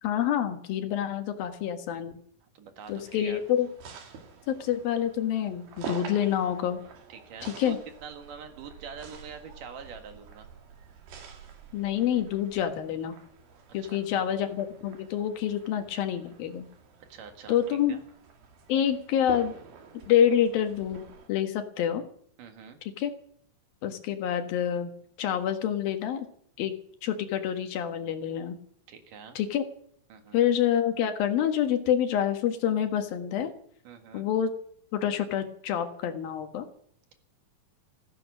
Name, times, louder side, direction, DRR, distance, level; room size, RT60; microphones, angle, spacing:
voice 1, 0.0-2.2 2.9-3.7 4.5-6.8 7.4-7.8 11.7-13.2 13.7-16.7 17.5-18.0 18.7-19.5 20.1-22.0 23.0-23.1 23.8-24.9 25.2-26.3 26.6-26.7 27.0-28.6 29.4-29.6 30.3-33.5 34.1-34.5 34.9-36.7, left 10 dB, 85° left, 7 dB, 3.4 m, -27 dB
voice 2, 2.4-3.4 7.1-10.5 13.8-14.3 17.1-17.6 17.9-18.0 22.4-22.8 28.9-29.4 30.1-30.4 33.8-34.3, right 6 dB, 70° right, 6 dB, 3.2 m, -45 dB
sound 1, 2.8-21.3, right 6 dB, 85° right, 4.2 m, -47 dB
15.0 x 15.0 x 6.2 m, 0.63 s
omnidirectional pair, 4.1 m